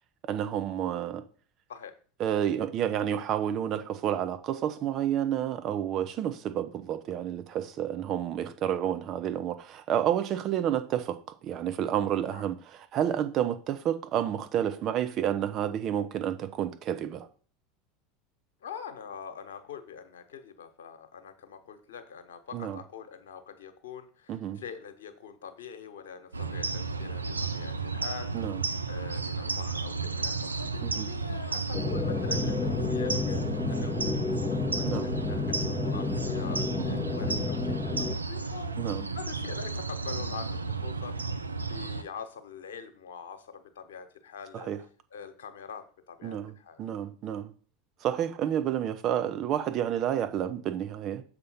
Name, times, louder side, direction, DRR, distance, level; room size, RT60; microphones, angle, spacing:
voice 1, 0.2-1.2 2.2-17.3 22.5-22.8 24.3-24.6 28.3-28.6 30.8-31.1 34.8-35.1 36.8-37.0 38.8-39.1 44.5-44.8 46.2-47.5 48.0-51.2, right 10 dB, 45° right, 0.8 m, -30 dB
voice 2, 18.6-28.3 28.9-38.7 39.1-44.7 45.1-46.8, left 7 dB, 70° left, 1.1 m, -44 dB
sound 1, 26.3-42.0, right 3 dB, 90° right, 0.4 m, -33 dB
sound 2, 31.7-38.2, left 4 dB, 20° left, 0.4 m, -31 dB
6.6 x 4.4 x 5.6 m
figure-of-eight pair, 80°, 0 cm